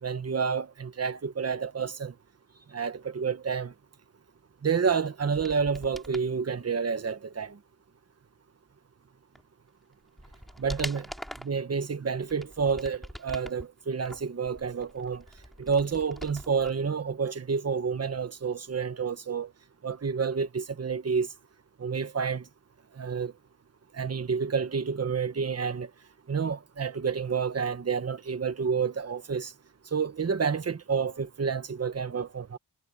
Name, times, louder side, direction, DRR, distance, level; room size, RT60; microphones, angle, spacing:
voice 1, 0.0-2.1 2.7-3.7 4.6-7.6 10.6-11.1 11.4-15.2 15.6-19.5 19.8-21.3 21.8-22.4 23.0-23.3 23.9-25.9 26.3-29.5 29.9-32.6, right 6 dB, 35° right, 1.3 m, -29 dB
sound 1, 5.4-6.3 9.3-9.4 9.9-11.6 12.2-13.6 14.0-16.7 17.0-17.1, equal, ahead, 4.3 m, -43 dB
wide cardioid pair, 125°, 41 cm